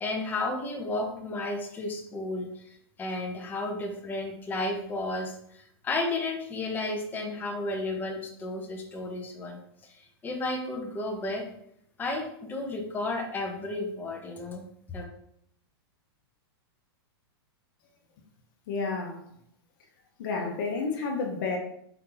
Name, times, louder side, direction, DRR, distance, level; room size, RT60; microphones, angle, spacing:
voice 1, 0.0-11.4 12.0-15.0, left 2 dB, 15° left, 1 dB, 0.7 m, -33 dB
voice 2, 18.7-19.2 20.2-21.6, left 4 dB, 50° left, 2 dB, 0.9 m, -30 dB
4.5 x 2.7 x 3.8 m, 0.71 s
hypercardioid pair, 150°, 14 cm